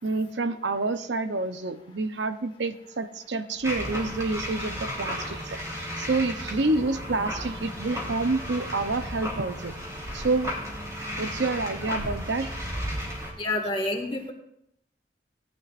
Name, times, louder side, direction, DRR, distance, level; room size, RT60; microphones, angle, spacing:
voice 1, 0.0-9.8 10.1-10.6 11.2-12.5, right 3 dB, 80° right, 9 dB, 0.8 m, -28 dB
sound 1, 3.6-13.3, equal, 20° right, 3.4 m, -34 dB
voice 2, 13.4-14.3, left 2 dB, 30° left, 2 dB, 1.9 m, -28 dB
18.5 x 12.0 x 2.6 m, 0.76 s
head